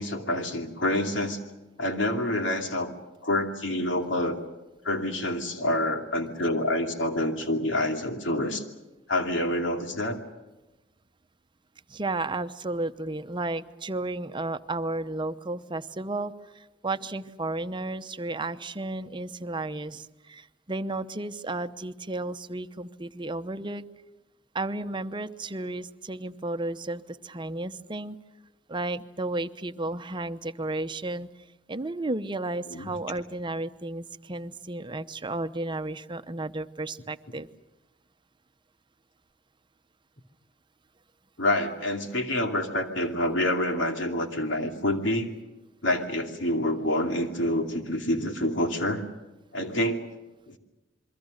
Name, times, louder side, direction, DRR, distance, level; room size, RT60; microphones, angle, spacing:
voice 1, 0.0-1.4 1.8-2.9 3.2-4.4 4.8-8.6 9.1-10.2 32.7-32.9 41.4-45.3 45.8-49.0 49.5-50.0 50.5-50.6, left 1 dB, 85° left, 4 dB, 2.7 m, -27 dB
voice 2, 11.9-23.8 24.5-28.2 28.7-31.3 31.7-37.5, right 2 dB, 25° right, 11 dB, 0.8 m, -33 dB
28.0 x 23.0 x 6.5 m, 1.1 s
head